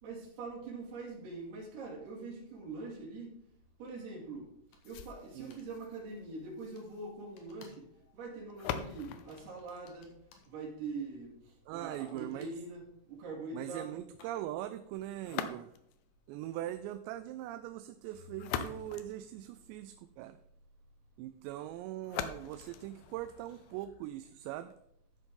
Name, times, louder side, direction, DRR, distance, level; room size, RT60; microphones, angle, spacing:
voice 1, 0.0-3.4 3.8-4.5 4.8-10.2 10.5-14.0, right 3 dB, 65° right, -4 dB, 4.4 m, -43 dB
sound 1, 3.9-4.0 4.7-5.1 5.5-5.7 6.8-6.9 7.4-7.9 8.2-8.5 9.1-10.5 11.9-14.7, left 5 dB, 60° left, 2.6 m, -62 dB
sound 2, 4.8-10.8 15.2-16.1 18.1-20.0 22.0-24.0, left 9 dB, 80° left, 2.4 m, -43 dB
voice 2, 11.7-12.6 13.5-15.7 16.3-20.4 21.2-24.7, right 13 dB, 90° right, 10 dB, 2.8 m, -41 dB
13.0 x 7.9 x 3.7 m, 0.75 s
omnidirectional pair, 5.0 m